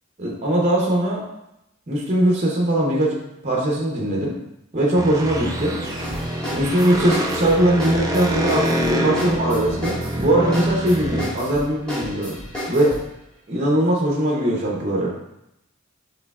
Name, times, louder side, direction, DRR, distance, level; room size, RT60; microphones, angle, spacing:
voice 1, 0.2-1.2 1.9-3.2 3.4-4.4 4.7-5.8 6.5-12.4 12.7-13.0 13.5-15.1, right 1 dB, 30° right, -3 dB, 0.7 m, -20 dB
sound 1, 5.0-11.2, equal, 15° right, 0.3 m, -25 dB
sound 2, 5.8-13.1, equal, 5° left, 1.4 m, -33 dB
6.3 x 3.2 x 2.3 m, 0.85 s
head